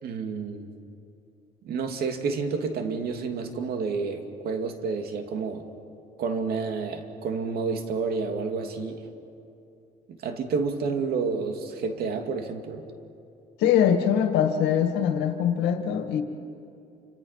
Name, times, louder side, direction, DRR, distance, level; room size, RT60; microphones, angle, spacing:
voice 1, 0.0-0.7 1.6-5.6 6.2-9.0 10.1-12.8, right 4 dB, 65° right, 5 dB, 2.6 m, -30 dB
voice 2, 13.6-16.2, left 9 dB, 85° left, 6 dB, 2.0 m, -22 dB
29.0 x 27.0 x 5.9 m, 2.6 s
cardioid pair, 110°, 17 cm